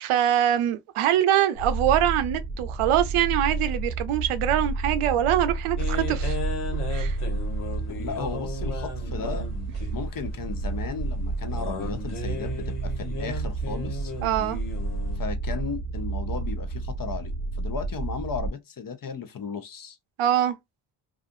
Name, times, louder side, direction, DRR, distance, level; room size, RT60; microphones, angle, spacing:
voice 1, 0.0-6.4 6.9-7.2 14.2-14.6 20.2-20.6, right 11 dB, 85° right, 0.6 m, -23 dB
sound 1, 1.6-18.5, right 3 dB, 50° right, 0.8 m, -30 dB
sound 2, 5.8-15.2, left 2 dB, 80° left, 1.2 m, -36 dB
voice 2, 7.9-9.5 9.9-14.1 15.2-20.0, left 6 dB, 45° left, 0.7 m, -35 dB
2.5 x 2.4 x 2.5 m
cardioid pair, 70°, 50 cm